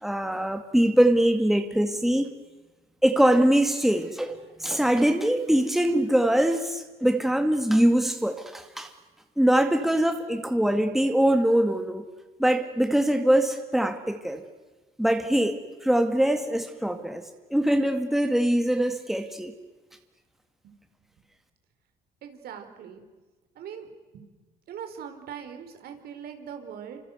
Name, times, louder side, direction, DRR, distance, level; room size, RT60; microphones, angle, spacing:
voice 1, 0.0-2.3 3.0-8.9 9.4-12.0 12.4-14.4 15.0-19.5, right 1 dB, ahead, 6 dB, 2.2 m, -23 dB
voice 2, 22.2-23.0 23.5-24.3 24.7-27.0, right 8 dB, 65° right, 6 dB, 4.7 m, -41 dB
28.0 x 25.5 x 8.0 m, 1.3 s
cardioid pair, 110°, 17 cm